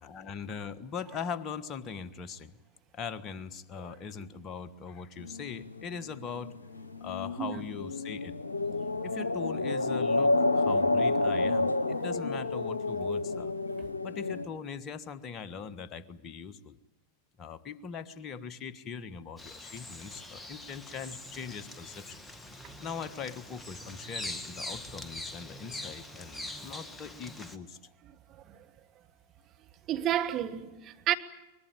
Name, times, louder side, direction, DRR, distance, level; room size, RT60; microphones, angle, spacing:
voice 1, 0.0-2.6 2.9-6.5 7.0-8.3 9.0-13.5 14.0-16.8 17.4-22.2 22.8-27.8, left 6 dB, 30° left, 1.4 m, -41 dB
sound 1, 5.2-14.5, left 2 dB, 80° left, 1.0 m, -30 dB
Bird vocalization bird call bird song, 19.4-27.6, left 1 dB, 10° left, 1.7 m, -43 dB
voice 2, 29.9-31.1, right 11 dB, 30° right, 1.6 m, -31 dB
24.0 x 21.0 x 8.9 m
figure-of-eight pair, 90°, 0 cm